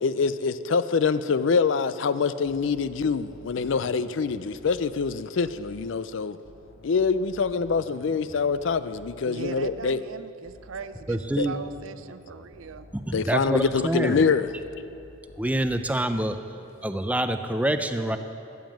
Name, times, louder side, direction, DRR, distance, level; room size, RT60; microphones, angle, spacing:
voice 1, 0.0-6.4 6.8-10.0 11.4-11.5 13.1-14.5, left 5 dB, 65° left, 0.4 m, -25 dB
sound 1, 2.4-6.0 6.4-10.0 10.4-14.0 14.4-16.5, equal, 45° left, 1.0 m, -51 dB
voice 2, 9.2-12.9, right 5 dB, 80° right, 0.5 m, -39 dB
voice 3, 11.1-11.5 13.1-14.2 15.4-16.4 16.8-18.2, right 1 dB, 5° right, 0.4 m, -26 dB
14.0 x 7.2 x 7.6 m
head